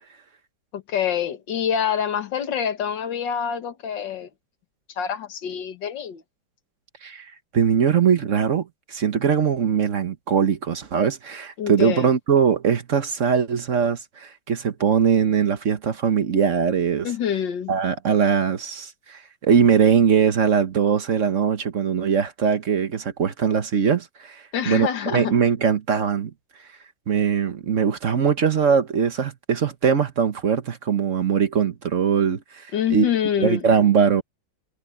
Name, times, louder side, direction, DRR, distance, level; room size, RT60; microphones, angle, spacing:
voice 1, 0.7-4.3 5.0-6.2 11.6-12.1 17.0-17.7 24.5-25.3 32.7-33.7, left 8 dB, 65° left, 2.1 m, -26 dB
voice 2, 7.0-17.1 17.7-26.3 27.1-33.1 33.4-34.2, right 7 dB, 45° right, 1.2 m, -21 dB
omnidirectional pair, 2.1 m